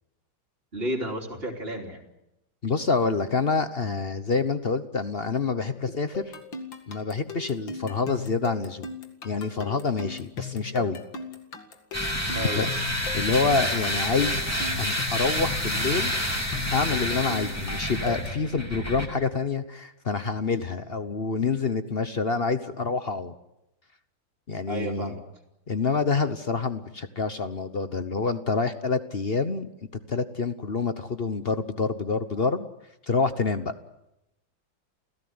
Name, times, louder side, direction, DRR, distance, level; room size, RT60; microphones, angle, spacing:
voice 1, 0.7-2.0 12.3-12.7 24.7-25.2, right 1 dB, 30° right, 3 dB, 3.5 m, -32 dB
voice 2, 2.6-6.3 6.9-8.9 9.2-11.0 12.5-12.7 13.1-14.5 14.8-16.1 16.7-23.3 24.5-25.1 25.7-29.7 30.1-32.7 33.0-33.7, left 4 dB, 40° left, 11 dB, 0.9 m, -27 dB
sound 1, 6.1-18.5, left 5 dB, 70° left, 2.9 m, -38 dB
sound 2, 11.9-19.1, equal, 5° left, 3.1 m, -28 dB
29.5 x 16.5 x 9.5 m, 0.90 s
omnidirectional pair, 2.2 m